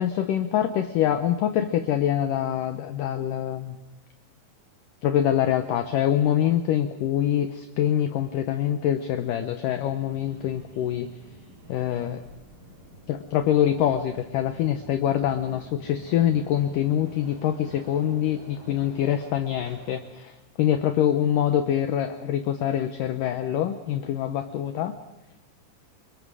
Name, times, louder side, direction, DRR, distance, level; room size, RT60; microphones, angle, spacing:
voice 1, 0.0-3.8 5.0-11.1 11.7-12.2 13.1-24.9, left 10 dB, 80° left, 9 dB, 1.9 m, -25 dB
Subway metro underground, 9.8-20.0, right 1 dB, 80° right, 7.5 m, -48 dB
30.0 x 22.5 x 4.9 m, 1.1 s
omnidirectional pair, 4.9 m